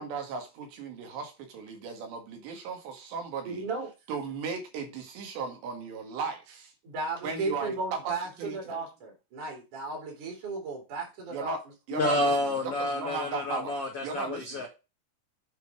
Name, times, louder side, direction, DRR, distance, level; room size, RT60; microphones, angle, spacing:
voice 1, 0.0-3.6 4.1-6.7 7.2-8.8 11.3-11.6 11.9-12.3 12.8-13.8 14.0-14.6, right 5 dB, 65° right, 3.9 m, -36 dB
voice 2, 3.5-3.9 6.8-11.6, right 3 dB, 45° right, 3.9 m, -35 dB
voice 3, 11.9-14.7, left 1 dB, 75° left, 1.3 m, -29 dB
9.2 x 5.3 x 4.8 m
omnidirectional pair, 5.8 m